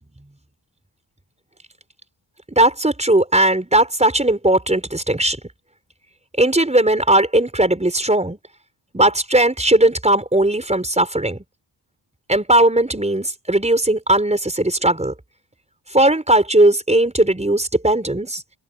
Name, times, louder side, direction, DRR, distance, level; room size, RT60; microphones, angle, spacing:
voice 1, 2.5-5.4 6.4-8.4 8.9-11.4 12.3-15.1 15.9-18.4, right 1 dB, 15° right, 5.5 m, -17 dB
open air
cardioid pair, 75°, 47 cm